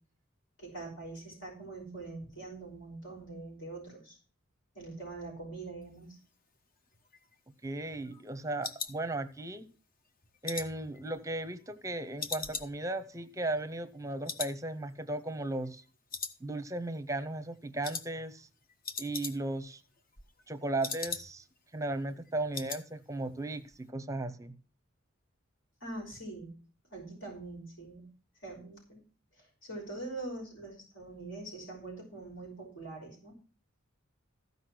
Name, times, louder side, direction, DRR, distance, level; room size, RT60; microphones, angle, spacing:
voice 1, 0.6-4.2 4.7-6.2 25.8-26.5 26.9-28.1 28.4-29.0 29.4-33.3, right 2 dB, 60° left, 1 dB, 5.5 m, -43 dB
sound 1, 6.9-9.7 10.0-11.8 12.2-14.0 14.2-14.6 14.9-15.0 15.4-15.8 16.1-16.9 17.2-17.4 17.8-18.1 18.4-18.5 18.7-19.7 20.0-21.6 21.9-22.0 22.2-22.9 23.1-23.4 23.7-23.8, left 5 dB, 45° left, 1.1 m, -41 dB
voice 2, 7.6-9.6 10.4-15.8 16.4-18.5 19.0-19.8 20.5-21.4 21.7-24.5, right 2 dB, 15° right, 11 dB, 0.8 m, -36 dB
14.5 x 5.4 x 6.3 m, 0.39 s
head